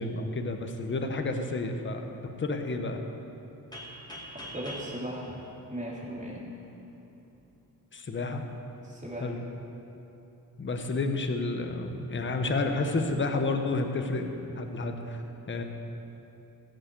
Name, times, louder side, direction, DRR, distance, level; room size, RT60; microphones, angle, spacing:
voice 1, 0.0-2.1 2.4-3.0 7.9-8.4 9.2-9.4 10.6-15.6, left 3 dB, 30° left, 5 dB, 1.1 m, -30 dB
sound 1, 3.7-6.5, equal, 10° left, 2.3 m, -44 dB
voice 2, 4.5-5.4 5.7-6.5 8.8-9.3, right 1 dB, 20° right, -4 dB, 2.9 m, -37 dB
14.5 x 6.6 x 8.2 m, 3.0 s
cardioid pair, 105°, 36 cm